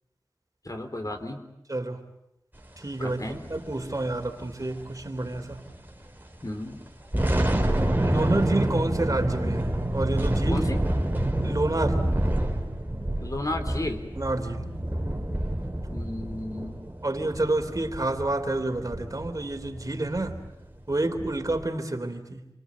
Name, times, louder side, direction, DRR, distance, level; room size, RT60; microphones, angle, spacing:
voice 1, 0.6-1.4 3.0-3.4 6.4-6.8 10.5-10.8 13.2-14.0 15.9-16.8, left 1 dB, 50° left, 4.0 m, -33 dB
voice 2, 1.7-2.0 2.8-5.6 7.5-10.7 11.4-12.1 14.1-14.7 17.0-20.4 20.9-22.5, right 2 dB, 45° right, 3.3 m, -29 dB
sound 1, 3.1-5.9 6.2-6.3 6.9-21.7, right 1 dB, 25° right, 3.9 m, -28 dB
29.5 x 24.5 x 8.2 m
wide cardioid pair, 50°, 8 cm